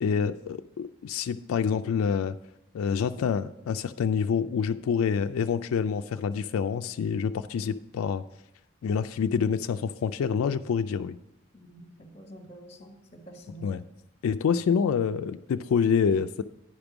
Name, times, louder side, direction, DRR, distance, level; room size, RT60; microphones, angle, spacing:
voice 1, 0.0-2.4 2.7-8.2 8.8-11.2 13.6-13.8 14.2-16.4, left 6 dB, 90° left, 9 dB, 0.3 m, -27 dB
voice 2, 11.5-13.7, right 1 dB, 30° left, 4 dB, 1.3 m, -47 dB
10.0 x 5.2 x 6.0 m, 0.85 s
head